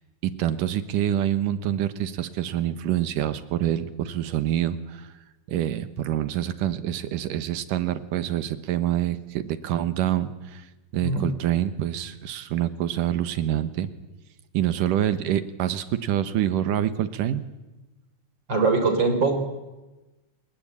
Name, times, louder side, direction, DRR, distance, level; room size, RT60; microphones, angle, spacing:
voice 1, 0.2-5.1 5.5-10.7 10.9-13.9 14.5-17.5, right 11 dB, 85° right, 12 dB, 2.8 m, -26 dB
voice 2, 18.5-19.4, right 4 dB, 35° right, 7 dB, 4.2 m, -22 dB
29.0 x 20.5 x 8.8 m, 1.1 s
omnidirectional pair, 3.8 m